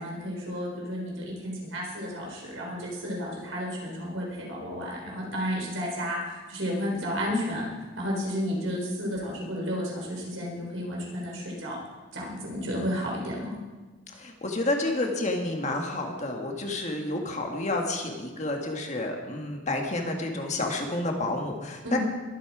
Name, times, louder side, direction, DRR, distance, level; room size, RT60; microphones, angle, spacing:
voice 1, 0.0-7.7 8.0-11.8 12.1-13.6 21.8-22.0, equal, 75° right, -2 dB, 4.2 m, -32 dB
voice 2, 14.1-22.0, left 2 dB, 35° left, 2 dB, 1.7 m, -30 dB
21.5 x 8.4 x 4.9 m, 1.3 s
head